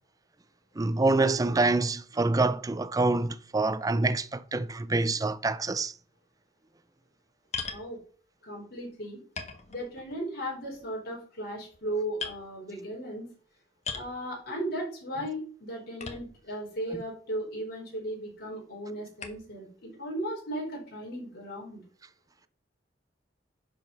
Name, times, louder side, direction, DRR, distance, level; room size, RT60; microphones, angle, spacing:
voice 1, 0.8-5.9, right 3 dB, 20° right, 0.5 m, -26 dB
sound 1, 7.5-7.9 8.8-8.9 9.4-10.2 10.6-10.9 11.6-11.8 12.2-12.4 13.8-14.2 16.0-16.5 17.3-17.4 19.2-19.5, left 5 dB, 40° left, 1.3 m, -38 dB
voice 2, 8.4-9.2 9.7-13.3 13.9-21.8, right 1 dB, 55° left, 4.6 m, -36 dB
11.0 x 5.0 x 5.4 m
head